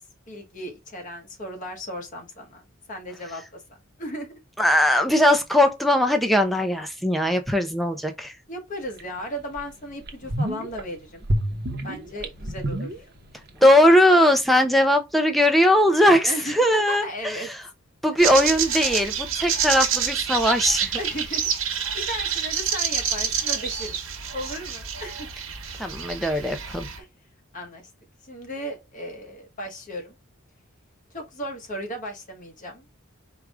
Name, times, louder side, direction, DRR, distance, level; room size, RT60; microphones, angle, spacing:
voice 1, 0.3-3.6 4.0-4.4 8.5-11.3 11.8-13.1 16.3-17.5 18.2-18.8 21.0-24.0 24.3-25.3 27.0-27.1 27.5-27.9 28.2-30.1 31.1-32.9, equal, 40° left, 1.3 m, -36 dB
voice 2, 4.6-8.3 13.6-17.4 18.0-21.0 25.8-26.9, left 1 dB, ahead, 0.6 m, -19 dB
sound 1, 9.0-9.1 9.6-9.7 10.0-10.8 11.2-13.5 13.7-13.8, right 1 dB, 50° right, 0.8 m, -28 dB
sound 2, 18.2-27.0, right 7 dB, 70° right, 1.1 m, -28 dB
4.7 x 2.4 x 3.6 m
head